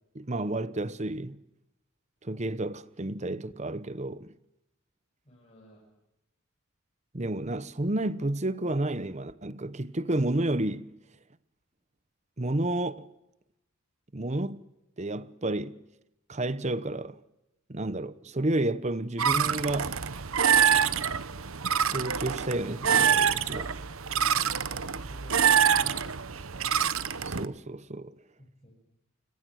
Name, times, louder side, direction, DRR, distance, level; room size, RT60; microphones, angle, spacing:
voice 1, 0.1-1.4 2.2-4.3 7.1-10.9 12.4-13.1 14.1-14.7 15.0-15.8 16.3-17.2 17.7-20.0 21.8-23.7 27.2-28.1, right 1 dB, 30° right, 0.9 m, -31 dB
voice 2, 5.2-5.8 24.9-26.0 28.4-28.7, equal, 30° left, 7.1 m, -53 dB
sound 1, 19.2-27.5, right 7 dB, 70° right, 1.0 m, -26 dB
29.5 x 25.5 x 6.4 m
head